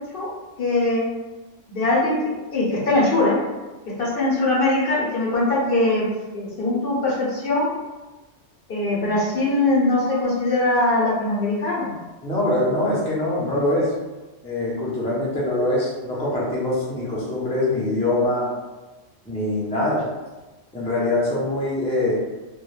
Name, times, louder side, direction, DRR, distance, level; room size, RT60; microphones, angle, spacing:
voice 1, 0.6-1.0 1.7-2.2 2.5-3.4 4.0-6.1 6.3-7.7 8.7-11.9, left 2 dB, 60° left, -5 dB, 0.7 m, -21 dB
voice 2, 12.2-13.9 14.4-18.5 19.3-20.0 20.7-22.2, left 1 dB, 10° left, -6 dB, 0.3 m, -23 dB
2.2 x 2.1 x 3.0 m, 1.2 s
omnidirectional pair, 1.2 m